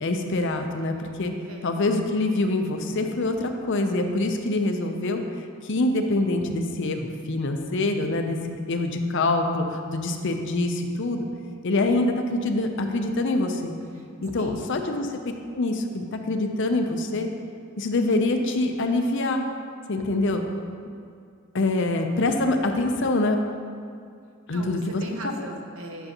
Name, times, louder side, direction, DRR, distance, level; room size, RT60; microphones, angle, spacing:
voice 1, 0.0-1.3 1.6-5.2 5.6-8.4 8.7-11.3 11.6-13.7 14.2-15.1 15.5-17.3 17.8-19.4 19.9-20.4 21.5-23.4 24.5-25.0, left 2 dB, 60° left, 4 dB, 0.7 m, -25 dB
voice 2, 24.5-26.1, right 1 dB, 85° right, 1 dB, 0.9 m, -38 dB
10.0 x 6.5 x 3.0 m, 2.3 s
head